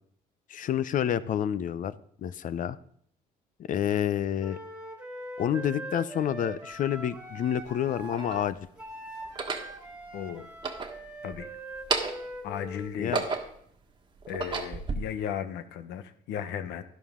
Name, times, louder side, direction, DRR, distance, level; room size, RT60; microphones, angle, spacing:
voice 1, 0.5-1.9 2.2-2.8 3.7-4.6 5.4-8.6 13.0-13.3, left 10 dB, 50° left, 16 dB, 0.6 m, -28 dB
Wind instrument woodwind instrument, 4.4-12.9, right 1 dB, 5° right, 2.1 m, -42 dB
sound 1, 6.7-6.8 7.6-8.5 9.2-9.7 10.5-11.4 11.7-12.3 12.8-13.7 14.2-15.0, right 4 dB, 25° right, 1.4 m, -32 dB
voice 2, 10.1-10.5 11.2-11.5 12.4-13.2 14.3-16.8, left 8 dB, 80° left, 11 dB, 0.9 m, -35 dB
11.5 x 11.5 x 3.7 m, 0.64 s
cardioid pair, 110°, 17 cm